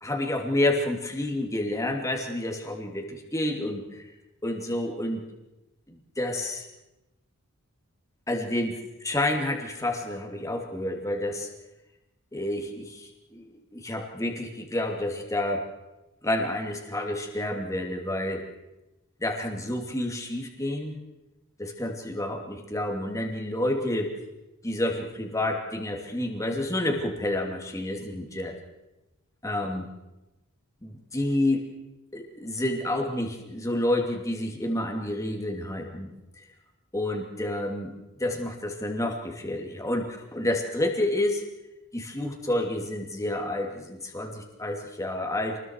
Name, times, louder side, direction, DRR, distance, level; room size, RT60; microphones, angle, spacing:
voice 1, 0.0-4.0 4.4-5.2 5.9-6.7 8.3-11.5 12.3-15.7 16.2-18.5 19.2-21.0 21.6-24.2 24.6-28.6 29.4-29.9 30.8-31.7 32.1-36.4 36.9-37.9 38.2-41.4 41.9-45.6, left 1 dB, 15° left, 2 dB, 2.8 m, -29 dB
28.0 x 20.5 x 4.7 m, 0.98 s
head